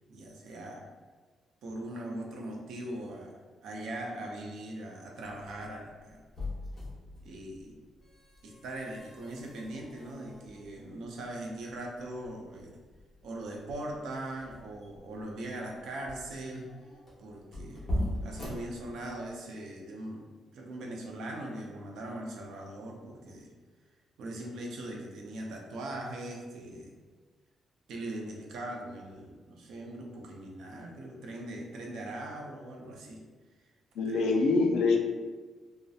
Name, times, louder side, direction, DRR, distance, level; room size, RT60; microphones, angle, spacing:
voice 1, 0.1-0.9 1.6-6.2 7.2-7.8 8.4-12.8 13.2-16.7 17.2-20.3 20.5-23.5 24.2-26.9 27.9-33.2 34.1-34.3, right 1 dB, 75° right, 0 dB, 0.4 m, -40 dB
sound 1, 5.4-19.4, left 1 dB, 30° left, 0.7 m, -41 dB
voice 2, 34.0-35.0, left 3 dB, 90° left, 2 dB, 0.3 m, -25 dB
2.6 x 2.0 x 2.3 m, 1.4 s
cardioid pair, 155°, 0 cm